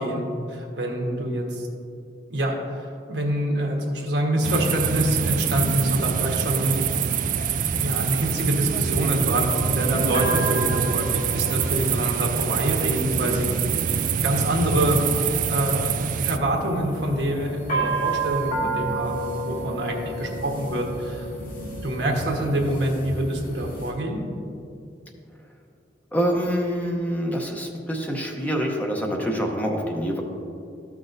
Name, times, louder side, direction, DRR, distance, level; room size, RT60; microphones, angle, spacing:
voice 1, 0.0-1.7 2.3-6.8 7.7-13.5 14.2-21.3 21.5-24.2, right 1 dB, 75° right, 0 dB, 1.2 m, -26 dB
sound 1, 4.4-16.4, right 7 dB, 50° right, 0.3 m, -25 dB
sound 2, 4.8-23.9, right 2 dB, 50° left, 1.8 m, -33 dB
voice 2, 26.1-30.2, equal, 10° left, 1 dB, 0.7 m, -26 dB
13.0 x 6.1 x 2.6 m, 2.5 s
head